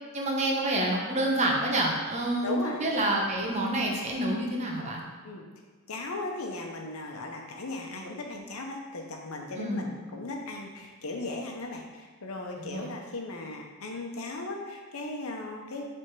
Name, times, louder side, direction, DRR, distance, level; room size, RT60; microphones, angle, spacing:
voice 1, 0.1-5.0 9.6-9.9 12.6-12.9, right 1 dB, 30° right, -1 dB, 0.9 m, -28 dB
voice 2, 2.4-2.8 5.2-5.5 5.9-15.9, left 2 dB, 80° left, 1 dB, 0.9 m, -37 dB
6.1 x 3.5 x 4.7 m, 1.4 s
head